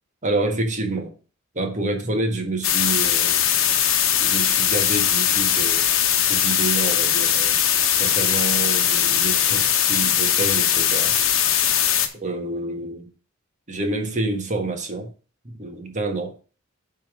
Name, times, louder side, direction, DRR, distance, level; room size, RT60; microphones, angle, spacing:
voice 1, 0.2-1.1 1.5-3.6 4.2-5.9 6.3-7.6 8.0-11.1 12.1-13.1 13.7-15.1 15.4-16.3, right 2 dB, 35° right, 4 dB, 1.5 m, -28 dB
sound 1, 2.6-12.1, left 9 dB, 75° left, 1.0 m, -20 dB
8.6 x 3.7 x 6.1 m, 0.36 s
head